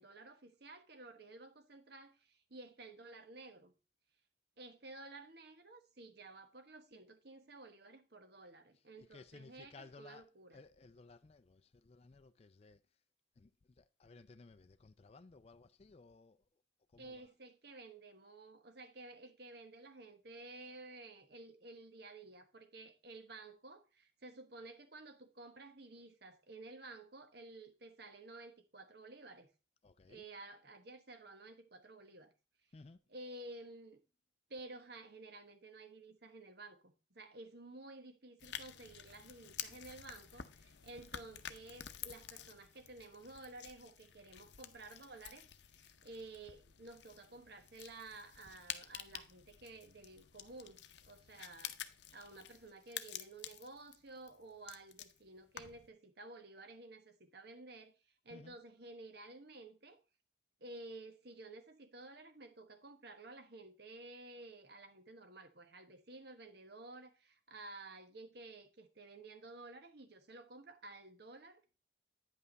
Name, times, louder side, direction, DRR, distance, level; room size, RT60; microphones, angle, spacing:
voice 1, 0.0-3.7 4.6-10.6 17.0-29.5 30.1-32.3 33.1-34.0 34.5-51.8 52.1-60.0 60.6-71.8, right 2 dB, 55° right, 1.2 m, -53 dB
voice 2, 8.7-12.8 13.4-13.5 13.8-16.4 16.9-17.3 29.8-30.2 32.7-33.0 58.3-58.6, left 3 dB, 30° left, 0.4 m, -58 dB
sound 1, 38.4-55.9, left 10 dB, 60° left, 0.7 m, -50 dB
9.5 x 5.6 x 3.9 m
head